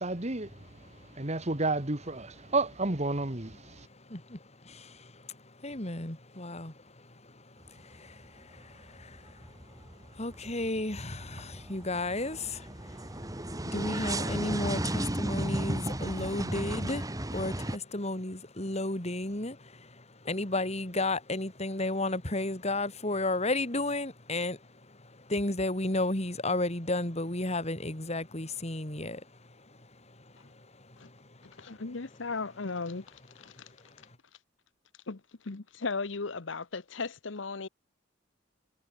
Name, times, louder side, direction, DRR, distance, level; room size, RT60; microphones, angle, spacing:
voice 1, 0.0-0.6 1.2-3.9, right 2 dB, 35° right, 1.8 m, -31 dB
voice 2, 0.8-1.3 2.5-2.6 3.8-31.8 33.6-34.0, left 2 dB, 35° left, 3.2 m, -34 dB
sound 1, 7.6-8.3 8.6-17.8, right 1 dB, 20° right, 2.1 m, -35 dB
voice 3, 31.6-33.0 33.4-33.5 35.1-37.7, left 4 dB, 75° left, 1.0 m, -36 dB
head